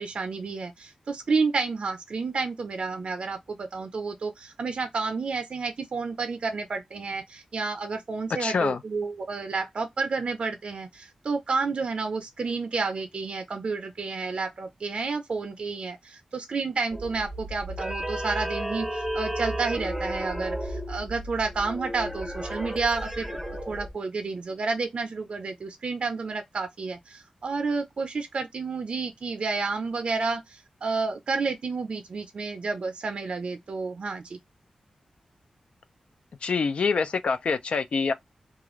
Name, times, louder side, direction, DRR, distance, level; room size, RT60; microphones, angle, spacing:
voice 1, 0.0-23.4 23.7-34.4, right 4 dB, 60° right, 0.4 m, -30 dB
voice 2, 8.4-8.8 36.4-38.1, left 5 dB, 65° left, 0.4 m, -25 dB
sound 1, 16.9-23.9, equal, 5° right, 0.7 m, -33 dB
2.4 x 2.4 x 3.0 m
cardioid pair, 70°, 2 cm